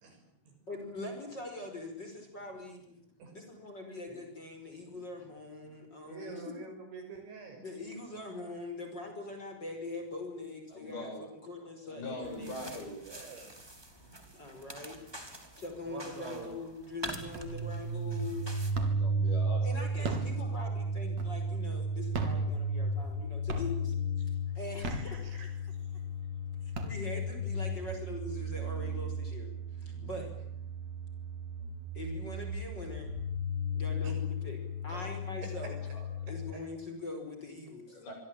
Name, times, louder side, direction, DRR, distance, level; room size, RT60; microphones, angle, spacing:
voice 1, 0.7-2.8 3.3-6.6 7.5-12.9 14.3-15.0 15.6-18.6 19.6-23.9 24.6-25.2 26.6-30.4 31.9-33.1 33.7-35.8 36.3-38.0, left 2 dB, 20° left, 4 dB, 5.5 m, -42 dB
voice 2, 6.0-7.7 13.1-13.6 15.9-16.5 24.8-25.5 34.0-34.1, right 4 dB, 70° right, 5 dB, 8.7 m, -46 dB
voice 3, 10.7-11.3 11.8-13.0 18.9-20.3 29.9-30.1 34.9-35.1 35.9-36.1 37.9-38.1, left 1 dB, 55° left, 3 dB, 9.5 m, -43 dB
sound 1, 12.2-18.7, right 1 dB, 5° right, 2.3 m, -46 dB
sound 2, 17.3-17.8 18.2-19.2 19.8-21.6 22.0-23.2 23.5-24.0 24.6-25.7 26.2-26.3 26.6-27.5, right 2 dB, 40° right, 4.0 m, -38 dB
sound 3, 17.3-36.5, equal, 85° right, 8.2 m, -34 dB
27.0 x 23.5 x 9.1 m, 0.73 s
omnidirectional pair, 5.5 m